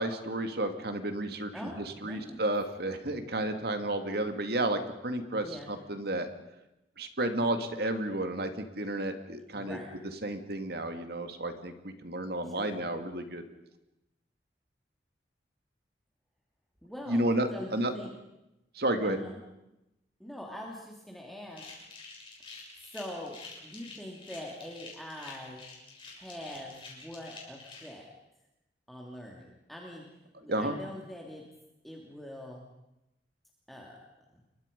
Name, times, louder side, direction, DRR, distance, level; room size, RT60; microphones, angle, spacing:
voice 1, 0.0-6.3 7.0-9.8 10.2-13.4 17.1-17.9 18.7-19.2 30.5-30.8, right 1 dB, 60° right, 7 dB, 2.4 m, -32 dB
voice 2, 1.5-2.4 5.4-5.7 9.5-9.9 12.4-12.8 16.8-17.2 17.5-18.1 19.0-19.4 20.2-21.6 22.9-25.6 26.2-28.1 28.9-30.0 30.4-31.4 31.8-32.6 33.7-34.0, left 1 dB, ahead, -2 dB, 2.8 m, -43 dB
sound 1, 21.5-27.9, left 4 dB, 30° left, 6.8 m, -48 dB
29.5 x 23.0 x 5.4 m, 0.91 s
head